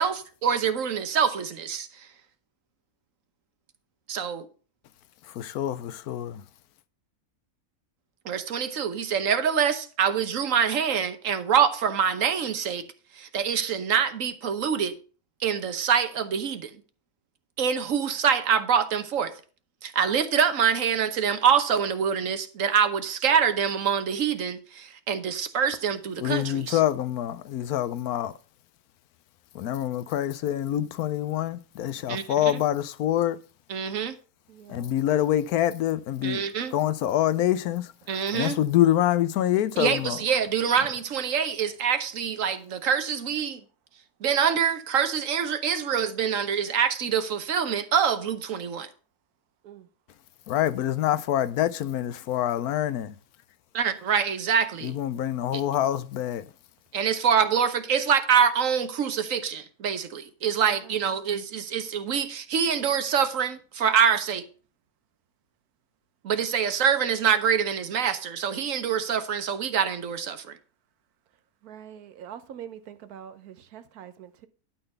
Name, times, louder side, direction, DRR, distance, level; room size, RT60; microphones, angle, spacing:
voice 1, 0.0-2.1 4.1-4.5 8.2-12.9 13.2-15.0 15.4-16.7 17.6-19.3 19.8-26.8 32.1-32.6 33.7-34.2 36.2-36.7 38.1-38.6 39.8-43.6 44.2-48.9 53.7-55.0 55.5-55.6 56.9-64.5 66.2-70.6, right 7 dB, 65° right, 1.3 m, -25 dB
voice 2, 5.4-6.4 26.2-28.3 29.5-33.4 34.7-36.4 36.7-37.8 38.3-40.2 50.5-53.1 54.8-56.4, left 12 dB, 85° left, 1.1 m, -26 dB
voice 3, 34.5-35.0 49.6-49.9 60.7-61.1 71.6-74.5, right 9 dB, 85° right, 1.3 m, -44 dB
12.0 x 4.0 x 6.7 m
omnidirectional pair, 1.5 m